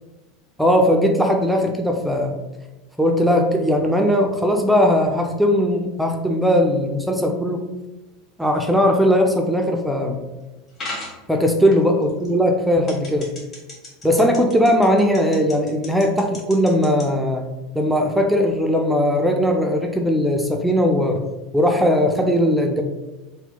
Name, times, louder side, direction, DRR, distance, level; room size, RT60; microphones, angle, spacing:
voice 1, 0.6-2.4 3.0-7.6 8.4-10.2 11.3-13.3 14.0-17.4 17.7-21.2 21.5-22.8, equal, ahead, 2 dB, 0.4 m, -19 dB
sound 1, 10.8-11.2 11.7-12.3 12.9-17.0, left 2 dB, 35° left, 1.4 m, -34 dB
2.8 x 2.1 x 3.8 m, 1.1 s
figure-of-eight pair, 80°, 0 cm